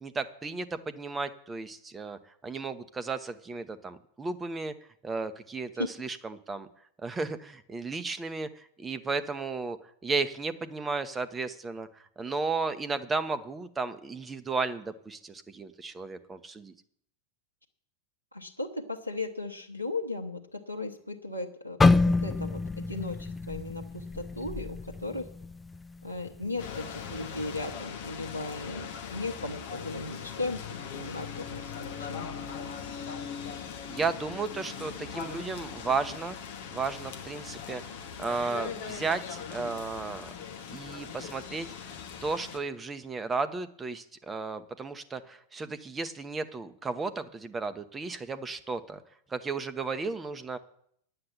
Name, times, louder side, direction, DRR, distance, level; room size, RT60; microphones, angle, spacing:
voice 1, 0.0-4.7 5.0-6.7 7.0-9.8 10.0-16.7 33.9-36.4 36.7-40.3 40.7-41.9 42.2-49.0 49.3-50.6, right 4 dB, 15° right, 10 dB, 1.0 m, -34 dB
voice 2, 18.3-21.8 22.1-25.2 26.0-30.6 30.9-32.2, left 2 dB, 90° right, 5 dB, 1.0 m, -36 dB
sound 1, 21.8-25.8 26.2-26.5 27.1-27.4, left 3 dB, 10° left, 0.4 m, -27 dB
sound 2, 26.6-42.6, left 7 dB, 50° left, 1.4 m, -40 dB
sound 3, 30.7-36.5, left 5 dB, 90° left, 5.2 m, -46 dB
9.7 x 7.8 x 8.6 m, 0.68 s
figure-of-eight pair, 90°, 0 cm